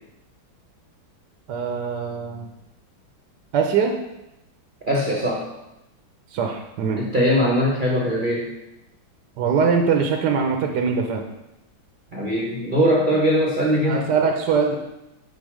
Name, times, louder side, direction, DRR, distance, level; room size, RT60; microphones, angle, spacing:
voice 1, 1.5-2.4 3.5-3.9 6.3-7.0 9.4-11.2 13.8-14.8, right 5 dB, 65° right, 2 dB, 1.2 m, -22 dB
voice 2, 4.9-5.5 7.0-8.5 12.1-14.0, equal, 35° right, -3 dB, 0.8 m, -21 dB
8.1 x 4.4 x 4.9 m, 0.91 s
omnidirectional pair, 2.3 m